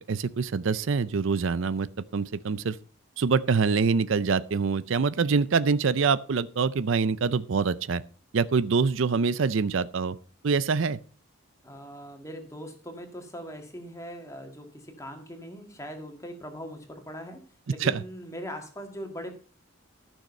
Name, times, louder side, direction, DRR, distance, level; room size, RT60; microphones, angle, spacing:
voice 1, 0.1-1.9 2.1-2.7 3.2-8.0 8.3-10.1 10.4-11.0 17.8-18.0, right 5 dB, 70° right, 0.5 m, -25 dB
voice 2, 11.6-17.4 17.7-19.3, equal, 15° left, 1.8 m, -40 dB
13.5 x 6.4 x 5.4 m
head